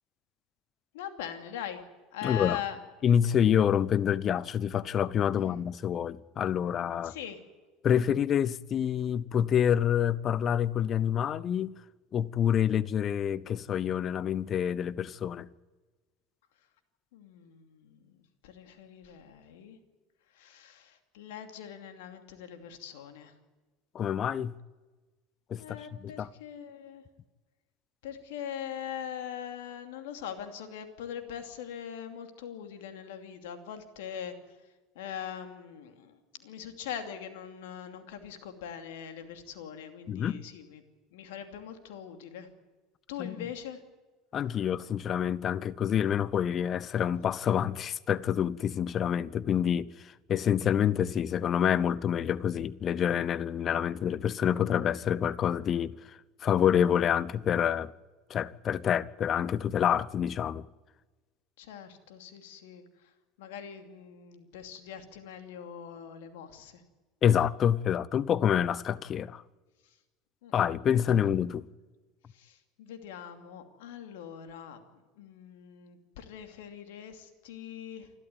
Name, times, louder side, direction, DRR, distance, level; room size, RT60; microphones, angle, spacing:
voice 1, 0.9-1.8 2.1-2.8 5.3-5.6 7.0-7.4 17.1-18.2 18.4-19.8 20.3-23.3 25.6-27.0 28.0-40.8 41.1-42.5 43.1-43.8 61.6-63.1 63.4-66.8 69.8-70.0 70.4-70.7 71.1-71.3 72.3-78.1, left 9 dB, 75° left, 2.6 m, -42 dB
voice 2, 2.2-2.6 3.0-7.1 7.8-11.8 12.1-15.5 23.9-24.5 25.5-26.3 40.1-40.4 43.2-43.5 44.3-57.9 58.3-60.7 67.2-69.4 70.5-71.7, left 9 dB, 40° left, 0.9 m, -27 dB
28.0 x 13.0 x 9.2 m
hypercardioid pair, 80°, 0 cm